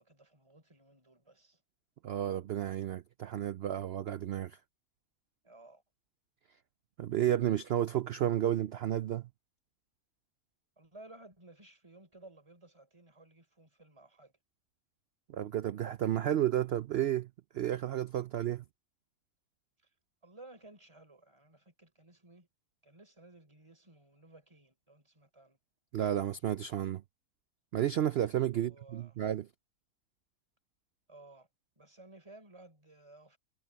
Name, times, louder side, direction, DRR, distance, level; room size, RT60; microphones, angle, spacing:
voice 1, 0.0-1.6 5.4-5.8 10.8-14.3 19.8-19.9 20.2-22.5 22.8-25.6 28.5-29.2 31.1-31.5 31.8-33.4, right 2 dB, 20° right, 4.5 m, -56 dB
voice 2, 2.0-4.6 7.0-9.3 15.3-17.3 17.5-18.6 25.9-27.0 27.7-29.5, right 11 dB, 90° right, 0.5 m, -32 dB
omnidirectional pair, 1.6 m